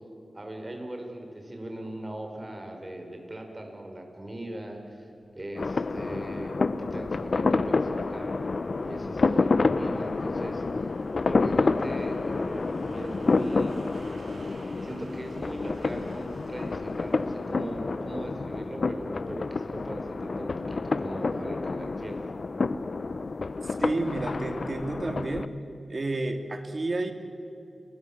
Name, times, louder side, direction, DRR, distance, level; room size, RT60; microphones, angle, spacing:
voice 1, 0.3-10.9 11.3-13.8 14.8-22.2, right 1 dB, 30° right, 3 dB, 5.6 m, -39 dB
sound 1, 5.4-20.3 20.6-20.7, right 2 dB, 80° right, 5.1 m, -53 dB
sound 2, 5.6-25.5, left 3 dB, 60° left, 0.8 m, -29 dB
voice 2, 23.6-25.5 25.9-27.1, right 2 dB, 50° right, 7 dB, 2.7 m, -30 dB
29.5 x 21.5 x 7.4 m, 2.8 s
wide cardioid pair, 65°, 0 cm